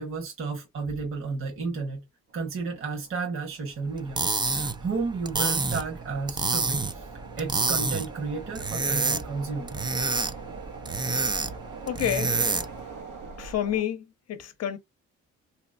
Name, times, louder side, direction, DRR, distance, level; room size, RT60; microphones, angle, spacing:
voice 1, 0.0-2.0 2.3-7.1 7.4-9.8, right 4 dB, 45° right, 1.2 m, -32 dB
sound 1, 2.3-13.8, right 5 dB, 85° right, 1.2 m, -44 dB
sound 2, 4.0-12.9, right 3 dB, 15° right, 0.4 m, -28 dB
voice 2, 11.9-12.3 13.4-14.8, left 10 dB, 55° left, 0.7 m, -29 dB
3.0 x 2.9 x 2.5 m
cardioid pair, 90°, 30 cm